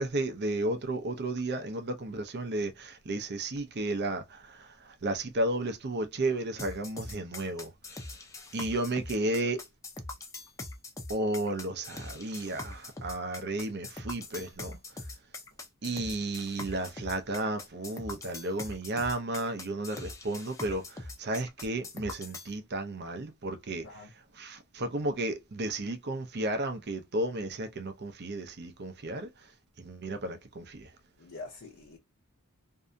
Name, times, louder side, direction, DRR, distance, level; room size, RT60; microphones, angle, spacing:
voice 1, 0.0-7.7 8.5-9.6 11.1-14.8 15.8-24.1 24.3-29.5 29.8-30.9, right 2 dB, 50° right, 0.6 m, -33 dB
sound 1, 6.6-22.5, left 2 dB, 15° left, 0.5 m, -42 dB
voice 2, 31.2-32.0, left 3 dB, 65° left, 0.7 m, -45 dB
2.6 x 2.5 x 2.2 m
head